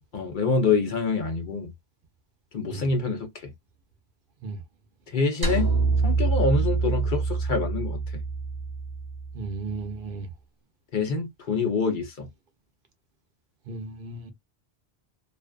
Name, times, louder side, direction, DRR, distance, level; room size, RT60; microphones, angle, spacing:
voice 1, 0.1-1.7 2.5-3.5 5.1-5.7 6.0-8.2 10.9-12.3, left 4 dB, 55° left, 0.8 m, -26 dB
sound 1, 5.4-9.8, right 4 dB, 25° right, 0.7 m, -26 dB
voice 2, 9.3-10.3 13.7-14.3, right 3 dB, 60° right, 0.8 m, -35 dB
2.5 x 2.3 x 2.3 m
omnidirectional pair, 1.1 m